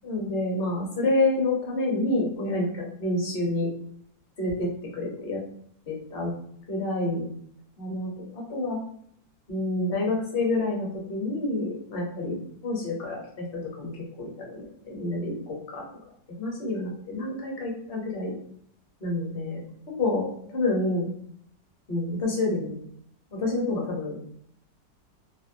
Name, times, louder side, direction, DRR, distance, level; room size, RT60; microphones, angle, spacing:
voice 1, 0.0-3.7 4.4-5.4 5.9-6.3 6.7-7.2 7.8-8.8 9.5-15.8 16.4-18.3 19.0-21.1 21.9-22.7 23.3-24.2, left 2 dB, 45° left, -2 dB, 0.9 m, -28 dB
2.8 x 2.1 x 2.5 m, 0.65 s
omnidirectional pair, 1.7 m